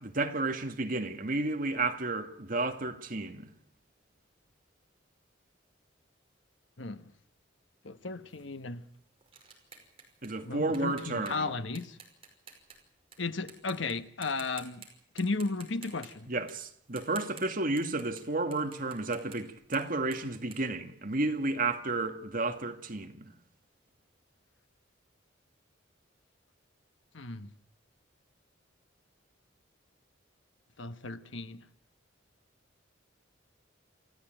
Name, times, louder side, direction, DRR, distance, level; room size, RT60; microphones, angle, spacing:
voice 1, 0.0-3.5 10.2-11.5 16.3-23.3, right 2 dB, 45° right, 1.9 m, -32 dB
voice 2, 7.8-8.8 10.4-12.0 13.2-14.8 15.1-16.3 27.1-27.5 30.8-31.6, left 3 dB, 75° left, 1.3 m, -35 dB
sound 1, 8.3-13.2 13.5-13.9 14.2-14.9 15.2-18.2 18.5-21.5, right 6 dB, 30° right, 5.5 m, -52 dB
28.0 x 14.5 x 9.0 m
head